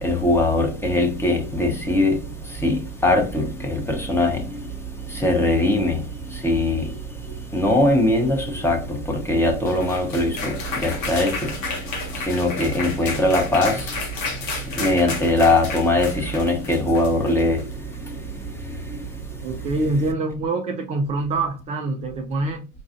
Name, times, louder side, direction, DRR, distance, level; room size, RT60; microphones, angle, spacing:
voice 1, 0.0-2.2 2.6-4.4 5.1-6.0 6.4-6.9 7.5-11.5 12.3-13.8 14.8-17.6 18.9-19.0, left 2 dB, 5° left, 0.8 m, -21 dB
sound 1, 9.4-17.7, left 4 dB, 70° left, 1.2 m, -32 dB
voice 2, 19.4-22.7, right 2 dB, 20° right, 0.4 m, -25 dB
5.3 x 2.3 x 2.5 m
hypercardioid pair, 100°, 39 cm